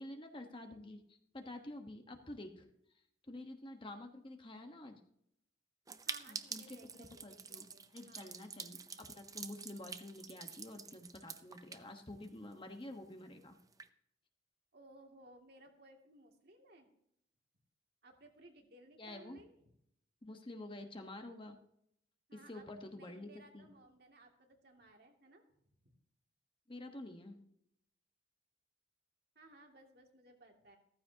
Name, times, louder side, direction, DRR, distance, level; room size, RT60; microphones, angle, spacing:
voice 1, 0.0-2.7 3.3-5.0 6.3-6.8 7.2-7.7 7.9-13.6 19.0-19.4 20.2-21.6 22.3-23.7 26.7-27.4, left 1 dB, 30° left, 5 dB, 1.3 m, -49 dB
sound 1, 5.9-12.5 12.8-12.9 13.1-13.2 13.6-13.9, right 5 dB, 20° right, 0.6 m, -47 dB
voice 2, 6.1-8.4 14.7-16.9 18.0-19.7 22.3-22.6 22.9-25.4 25.8-25.9 29.3-30.8, right 1 dB, 60° right, 1 dB, 2.5 m, -60 dB
15.0 x 14.5 x 2.9 m, 0.73 s
head